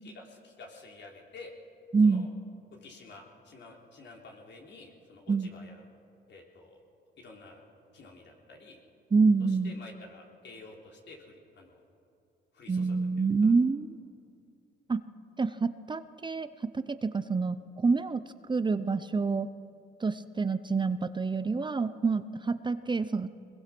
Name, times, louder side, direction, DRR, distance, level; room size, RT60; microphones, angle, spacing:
voice 1, 0.0-1.5 2.0-2.3 2.8-5.8 6.3-6.8 7.2-7.6 7.9-8.8 9.5-11.8 12.5-13.3, left 3 dB, 65° left, 0 dB, 3.8 m, -50 dB
voice 2, 1.9-2.3 5.3-5.5 9.1-9.7 12.7-13.9 14.9-15.0 15.4-18.2 18.5-19.5 20.0-23.3, right 4 dB, 25° right, 12 dB, 0.7 m, -27 dB
22.5 x 21.0 x 6.1 m, 2.7 s
cardioid pair, 90°, 20 cm